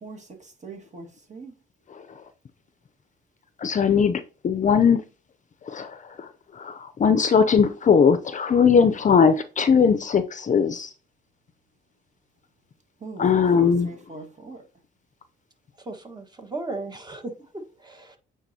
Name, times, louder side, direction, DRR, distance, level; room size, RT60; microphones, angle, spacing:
voice 1, 0.0-1.5 13.0-14.6, right 3 dB, 35° right, 1.9 m, -41 dB
voice 2, 3.6-5.0 5.7-6.3 6.6-10.9 13.2-13.9, left 6 dB, 40° left, 0.6 m, -20 dB
voice 3, 15.8-18.2, right 2 dB, 20° right, 1.4 m, -36 dB
8.8 x 4.0 x 2.8 m
cardioid pair, 90°, 20 cm